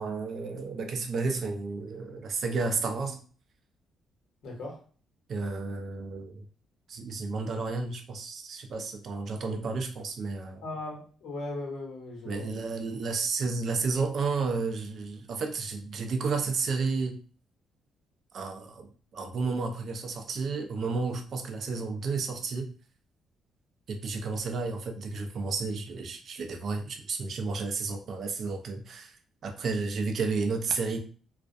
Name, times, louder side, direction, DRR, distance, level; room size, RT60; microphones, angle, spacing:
voice 1, 0.0-3.2 5.3-6.4 6.9-10.6 12.3-17.2 18.3-22.7 23.9-29.2 29.4-31.0, right 4 dB, 55° right, 5 dB, 0.4 m, -32 dB
voice 2, 4.4-4.8 10.6-12.5, left 2 dB, 70° left, 0 dB, 1.0 m, -38 dB
2.3 x 2.1 x 2.5 m, 0.41 s
cardioid pair, 90°, 0 cm